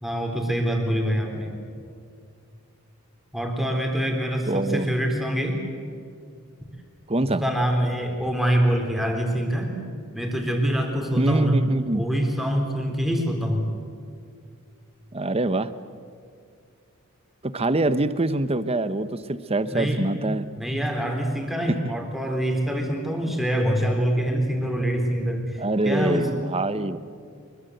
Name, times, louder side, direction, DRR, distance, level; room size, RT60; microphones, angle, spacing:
voice 1, 0.0-1.5 3.3-5.6 7.2-9.7 10.1-11.6 11.9-13.7 19.7-20.1 20.6-26.3, equal, ahead, 2 dB, 3.9 m, -25 dB
voice 2, 4.5-4.8 7.1-7.4 11.2-12.0 15.1-15.7 17.4-20.5 21.7-21.8 23.2-23.3 25.6-27.0, right 2 dB, 25° right, 12 dB, 1.0 m, -24 dB
24.5 x 22.5 x 8.0 m, 2.3 s
head